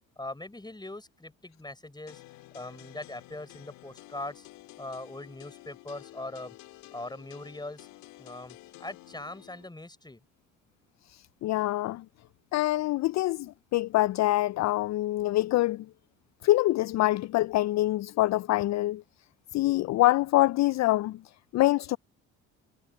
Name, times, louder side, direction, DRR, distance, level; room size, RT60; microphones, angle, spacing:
voice 1, 0.2-2.2 2.5-4.5 4.8-6.6 6.9-7.9 8.2-10.2, left 2 dB, 10° left, 6.9 m, -41 dB
sound 1, 2.1-9.7, left 20 dB, 80° left, 4.0 m, -51 dB
voice 2, 11.1-12.0 12.5-15.9 16.4-19.0 19.5-21.2 21.5-22.0, left 17 dB, 50° left, 0.5 m, -25 dB
hypercardioid pair, 65°, 34 cm